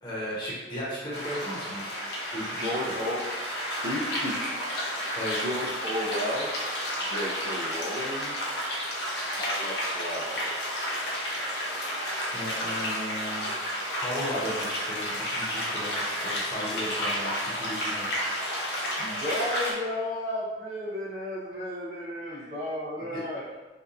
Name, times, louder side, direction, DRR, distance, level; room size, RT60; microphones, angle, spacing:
voice 1, 0.0-1.9 2.3-2.7 5.1-5.4 12.3-13.5 14.0-18.1 22.3-22.5 23.1-23.2, equal, 25° left, -7 dB, 0.7 m, -35 dB
sound 1, 1.1-19.7, equal, 60° left, 0.6 m, -31 dB
voice 2, 2.6-3.2 3.8-4.6 5.4-6.5 7.0-8.4 9.3-10.6 19.0-23.4, left 1 dB, 55° right, -8 dB, 0.5 m, -33 dB
2.7 x 2.2 x 2.4 m, 1.2 s
head